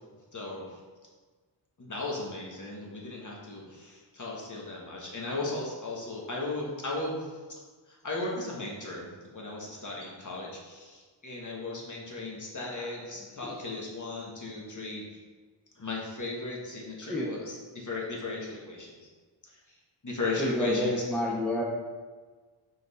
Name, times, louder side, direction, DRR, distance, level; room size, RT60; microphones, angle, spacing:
voice 1, 0.3-0.8 1.8-7.6 7.9-15.1 15.8-19.1 20.0-21.0, left 2 dB, 35° left, -3 dB, 1.4 m, -36 dB
voice 2, 20.4-21.6, left 1 dB, ahead, -3 dB, 0.7 m, -29 dB
5.8 x 3.9 x 4.2 m, 1.4 s
wide cardioid pair, 105°, 50 cm